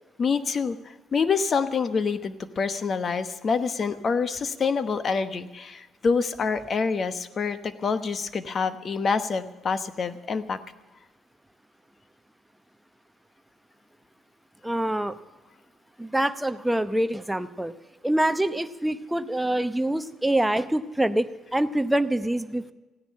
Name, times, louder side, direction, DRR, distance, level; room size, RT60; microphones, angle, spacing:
voice 1, 0.2-0.8 1.1-10.6, left 5 dB, 40° left, 12 dB, 1.1 m, -26 dB
voice 2, 14.6-15.2 16.0-17.7 18.0-22.7, right 1 dB, 5° right, 10 dB, 0.8 m, -25 dB
15.5 x 10.0 x 8.6 m, 1.1 s
cardioid pair, 120°, 0 cm